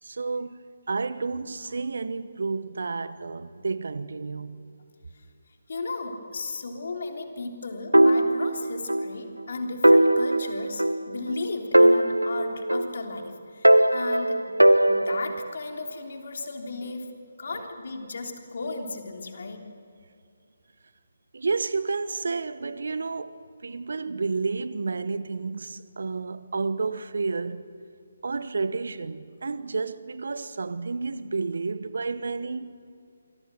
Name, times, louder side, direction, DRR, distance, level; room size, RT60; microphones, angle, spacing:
voice 1, 0.0-4.6 17.5-17.7 21.3-27.7 28.2-32.7, right 4 dB, 60° right, 1.1 m, -31 dB
voice 2, 5.7-14.5 14.9-17.1 17.4-19.6, left 3 dB, 55° left, 3.4 m, -35 dB
sound 1, 7.9-9.1 9.4-9.5 9.8-11.4 11.7-13.2 13.6-15.5, right 1 dB, 90° right, 0.7 m, -20 dB
27.5 x 24.0 x 6.3 m
figure-of-eight pair, 145°, 0 cm